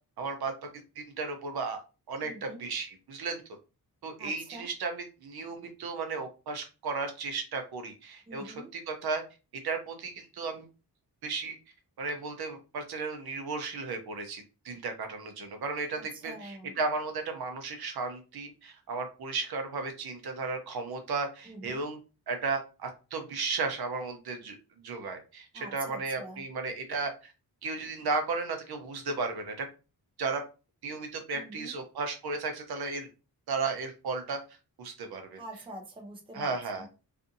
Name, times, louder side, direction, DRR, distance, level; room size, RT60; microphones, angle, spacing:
voice 1, 0.2-0.5 1.0-1.8 2.1-3.4 4.0-9.2 9.6-10.7 11.2-11.6 12.0-22.0 22.3-24.6 24.8-27.3 27.6-29.7 30.2-30.4 30.8-33.1 33.5-34.4 34.8-35.4 36.3-36.9, right 4 dB, 75° right, 5 dB, 0.7 m, -34 dB
voice 2, 2.2-2.6 4.2-4.7 8.3-8.7 16.0-16.7 21.5-21.8 25.5-26.4 31.3-31.7 35.4-36.5 36.8-36.9, right 1 dB, 15° right, 2 dB, 0.5 m, -45 dB
2.5 x 2.5 x 2.6 m, 0.31 s
wide cardioid pair, 180°, 38 cm